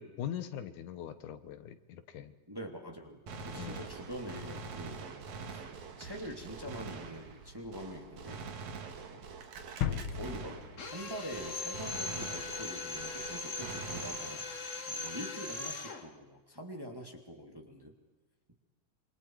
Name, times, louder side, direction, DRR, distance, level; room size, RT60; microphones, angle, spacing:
voice 1, 0.0-2.3 3.5-3.9, left 10 dB, 85° left, 10 dB, 2.7 m, -41 dB
voice 2, 2.5-5.7 6.0-8.5 9.1-9.2 9.8-17.9, equal, 10° right, 2 dB, 2.2 m, -45 dB
Gunshot gunfire, 3.3-11.1 11.3-14.7, right 5 dB, 70° right, 3.1 m, -45 dB
sound 1, 9.8-11.6 11.9-12.0, left 9 dB, 65° left, 1.3 m, -37 dB
Drill, 10.8-16.1, left 3 dB, 35° left, 1.4 m, -40 dB
27.5 x 25.5 x 4.7 m, 1.2 s
omnidirectional pair, 3.4 m